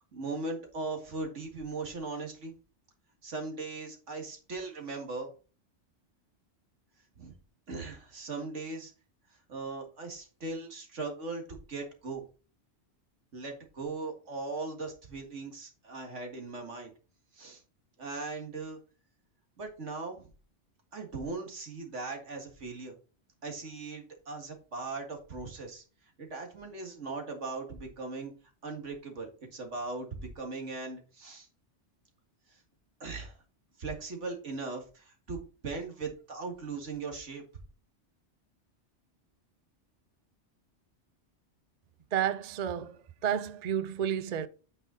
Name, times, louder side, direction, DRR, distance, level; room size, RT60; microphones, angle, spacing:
voice 1, 0.1-2.5 3.2-5.3 7.2-7.3 7.7-8.9 9.5-12.2 13.3-16.9 17.3-17.6 18.0-18.8 19.6-20.3 20.9-22.9 23.4-25.8 26.2-28.3 28.6-31.5 33.0-33.4 33.8-37.4, right 3 dB, 85° right, 2.2 m, -39 dB
voice 2, 42.1-44.5, right 9 dB, 50° right, 0.5 m, -31 dB
8.9 x 5.5 x 3.8 m
omnidirectional pair, 1.2 m